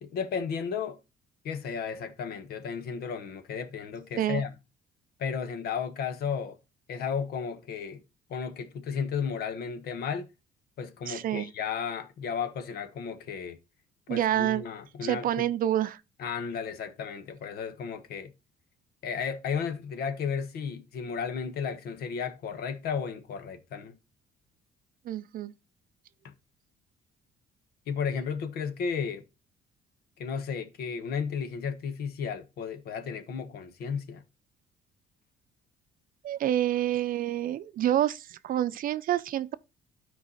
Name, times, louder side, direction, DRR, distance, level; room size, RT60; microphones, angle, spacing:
voice 1, 0.0-1.0 1.4-4.5 5.2-6.6 6.9-8.0 8.3-10.3 10.8-13.6 14.1-15.5 16.2-18.3 19.0-24.0 26.2-26.3 27.9-29.2 30.2-34.2, left 6 dB, 65° left, 1.4 m, -34 dB
voice 2, 11.1-11.5 14.1-14.6 15.0-16.0 25.1-25.5 36.2-39.5, right 12 dB, 55° right, 0.6 m, -28 dB
12.5 x 4.7 x 4.1 m
cardioid pair, 110°, 17 cm